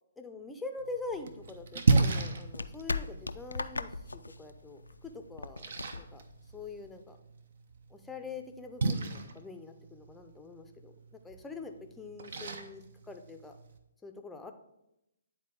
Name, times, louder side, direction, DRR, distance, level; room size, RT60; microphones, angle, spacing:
voice 1, 0.2-6.2 6.5-7.2 7.9-13.6 14.0-14.5, left 3 dB, 5° left, 5 dB, 0.6 m, -44 dB
Splash splatter, 0.8-13.8, right 3 dB, 55° right, 0.7 m, -35 dB
sound 1, 1.1-7.0, left 3 dB, 80° left, 0.4 m, -40 dB
9.4 x 4.0 x 3.8 m, 0.86 s
figure-of-eight pair, 135°, 0 cm